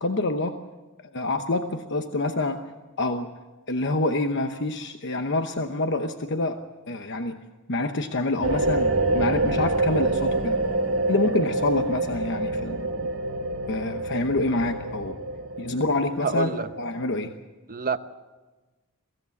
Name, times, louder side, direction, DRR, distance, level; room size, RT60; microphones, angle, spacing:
voice 1, 0.0-0.6 1.1-2.6 3.0-3.3 3.7-6.6 6.9-7.4 7.7-10.6 11.1-13.1 13.7-15.2 15.6-17.3, left 2 dB, 55° left, 7 dB, 1.0 m, -27 dB
sound 1, 8.4-17.3, right 2 dB, 70° right, 2.6 m, -27 dB
voice 2, 16.2-16.7 17.7-18.0, right 5 dB, 40° right, 9 dB, 1.0 m, -27 dB
23.0 x 16.5 x 8.3 m, 1.2 s
head